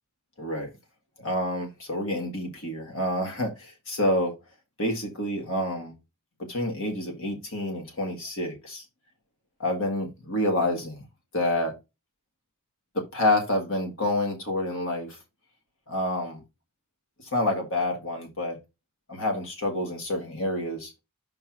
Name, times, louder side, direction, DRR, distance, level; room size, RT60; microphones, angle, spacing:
voice 1, 0.4-0.7 1.2-4.4 4.8-5.9 6.5-8.9 9.6-11.0 11.3-11.7 13.0-15.2 15.9-16.4 17.3-18.6 19.1-20.9, left 1 dB, 65° left, 1.8 m, -28 dB
5.6 x 3.8 x 5.9 m
head